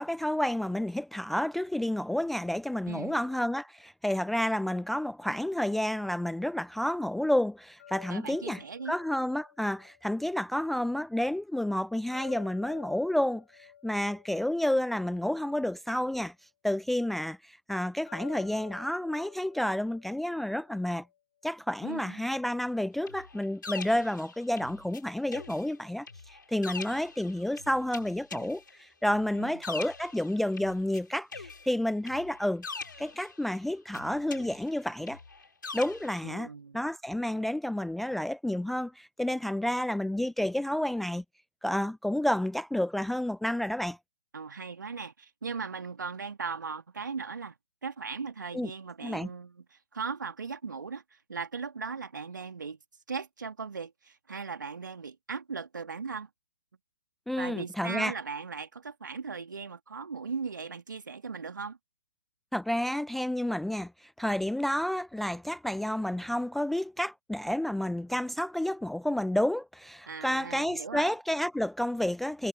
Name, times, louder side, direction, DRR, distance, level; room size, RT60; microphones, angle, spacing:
voice 1, 0.0-16.3 16.6-21.1 21.4-32.6 33.0-35.2 35.7-36.5 36.7-41.2 41.6-44.0 48.5-48.7 49.0-49.3 57.3-58.1 62.5-72.5, left 1 dB, ahead, 0.4 m, -30 dB
voice 2, 2.9-3.2 8.1-8.9 21.8-22.3 29.4-29.6 36.2-36.9 44.3-47.5 47.8-52.8 53.1-56.3 57.4-61.8 70.1-71.1, right 5 dB, 65° right, 2.3 m, -38 dB
sound 1, 7.8-10.9 12.1-15.6 18.1-21.2, left 10 dB, 45° left, 5.0 m, -53 dB
sound 2, 23.1-25.0 25.3-31.0 31.3-33.6 33.9-36.2, left 4 dB, 70° left, 3.5 m, -43 dB
figure-of-eight pair, 125°, 11 cm